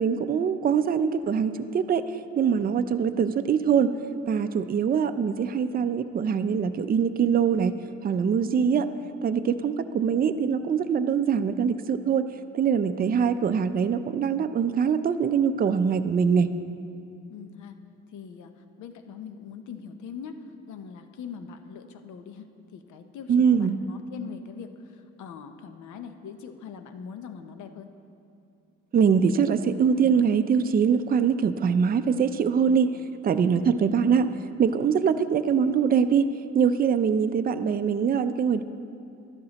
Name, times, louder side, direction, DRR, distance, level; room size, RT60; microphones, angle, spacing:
voice 1, 0.0-2.0 2.4-3.9 4.3-7.7 8.0-8.8 9.2-12.2 12.5-16.5 23.3-23.8 28.9-33.0 33.2-34.3 34.6-36.3 36.5-38.6, right 7 dB, 30° right, 10 dB, 0.4 m, -23 dB
voice 2, 8.5-8.9 17.3-17.8 18.1-27.9 33.6-33.8, left 6 dB, 75° left, 8 dB, 0.7 m, -42 dB
12.5 x 10.5 x 2.9 m, 2.6 s
cardioid pair, 90°, 30 cm